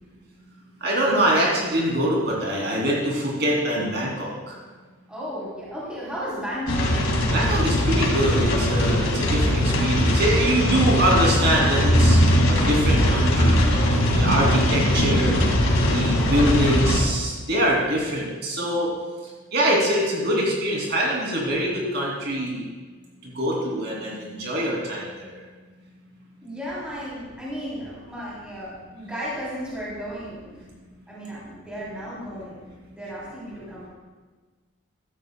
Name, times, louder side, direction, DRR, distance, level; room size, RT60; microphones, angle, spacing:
voice 1, 0.8-4.5 7.3-12.2 12.5-15.3 15.9-18.9 19.5-22.6 23.4-25.3, right 1 dB, 50° right, -3 dB, 2.8 m, -24 dB
voice 2, 5.1-6.9 26.4-30.6 31.1-32.6 32.9-33.9, equal, 5° right, -8 dB, 3.2 m, -34 dB
sound 1, 6.7-17.0, equal, 75° left, 2.1 m, -20 dB
15.5 x 12.5 x 2.3 m, 1.4 s
head